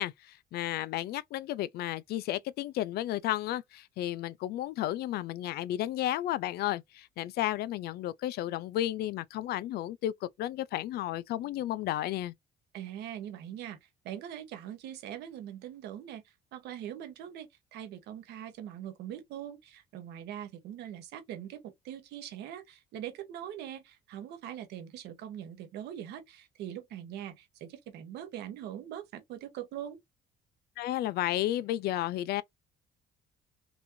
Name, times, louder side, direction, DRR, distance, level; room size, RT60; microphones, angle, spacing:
voice 1, 0.0-12.3 30.8-32.4, left 14 dB, 70° left, 0.4 m, -33 dB
voice 2, 12.7-30.0, right 10 dB, 80° right, 1.2 m, -42 dB
4.1 x 2.7 x 2.7 m
cardioid pair, 110°, 17 cm